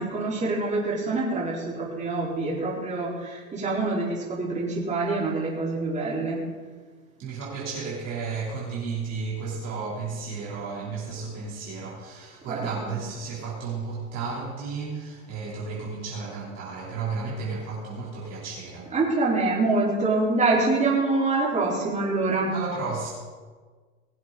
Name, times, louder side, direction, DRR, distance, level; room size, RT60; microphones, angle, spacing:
voice 1, 0.0-6.4 12.5-12.9 18.9-22.5, right 3 dB, 15° right, -5 dB, 4.2 m, -25 dB
voice 2, 7.2-18.9 22.5-23.1, right 4 dB, 40° right, -5 dB, 3.3 m, -33 dB
20.5 x 7.8 x 3.9 m, 1.5 s
hypercardioid pair, 110°, 41 cm